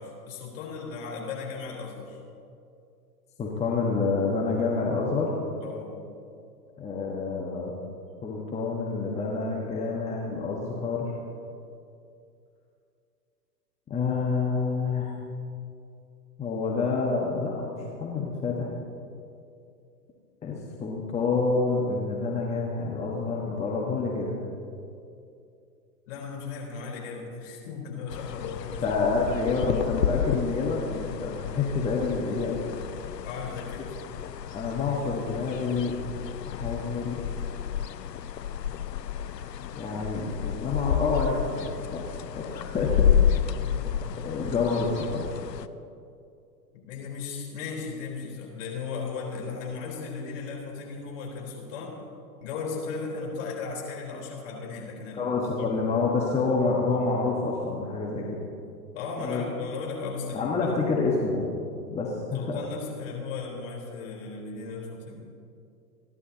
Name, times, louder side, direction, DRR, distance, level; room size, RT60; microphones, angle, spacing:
voice 1, 0.0-2.2 5.6-6.0 26.1-28.8 33.2-33.9 43.5-44.0 46.7-51.9 52.4-55.8 58.9-60.8 62.3-65.2, left 4 dB, 50° left, -2 dB, 4.1 m, -36 dB
voice 2, 3.4-5.3 6.8-7.7 8.2-11.1 13.9-15.1 16.4-18.7 20.4-24.4 28.8-32.6 34.5-36.0 36.4-37.1 39.8-42.0 42.3-43.2 43.8-45.3 55.1-58.4 59.2-59.4 60.3-61.6 61.9-62.6, left 4 dB, 15° left, -2 dB, 1.4 m, -28 dB
sound 1, 28.1-45.7, left 9 dB, 75° left, 0.7 m, -30 dB
28.5 x 11.0 x 2.9 m, 2.5 s
figure-of-eight pair, 105°, 50 cm